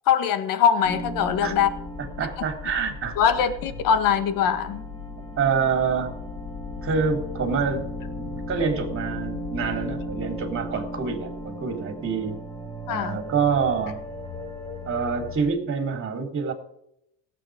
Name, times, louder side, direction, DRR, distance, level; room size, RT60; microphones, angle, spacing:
voice 1, 0.1-1.7 3.2-4.8 12.9-13.2, left 8 dB, 60° left, 10 dB, 1.7 m, -22 dB
sound 1, 0.8-15.5, left 1 dB, 15° left, 3.6 m, -36 dB
voice 2, 2.0-3.4 5.4-6.1 6.8-7.8 8.2-12.4 12.9-14.0 14.9-16.5, right 5 dB, 35° right, 4 dB, 3.7 m, -26 dB
17.0 x 8.7 x 5.0 m, 0.75 s
cardioid pair, 120°, 37 cm